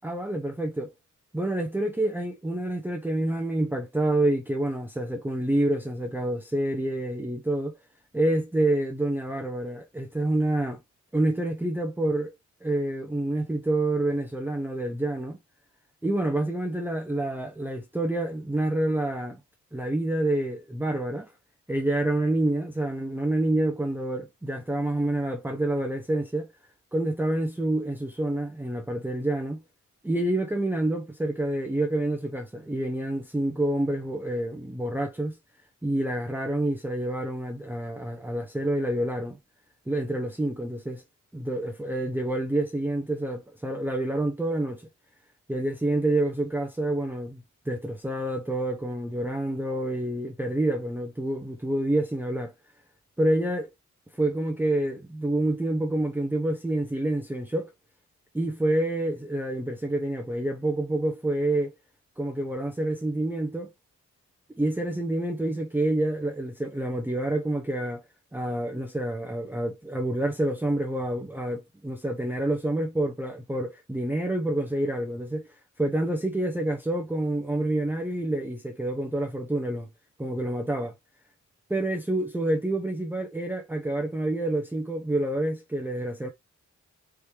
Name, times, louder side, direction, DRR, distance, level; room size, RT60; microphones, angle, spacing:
voice 1, 0.0-0.9 1.3-7.8 8.1-10.8 11.1-12.3 12.6-15.4 16.0-19.4 19.7-21.3 21.7-26.5 26.9-29.6 30.0-35.4 35.8-39.4 39.9-41.0 41.3-44.9 45.5-52.5 53.2-53.7 54.1-57.7 58.3-61.7 62.2-63.7 64.5-68.0 68.3-79.9 80.2-80.9 81.7-86.3, right 1 dB, 5° right, 0.8 m, -28 dB
4.5 x 3.2 x 3.3 m
cardioid pair, 85°, 31 cm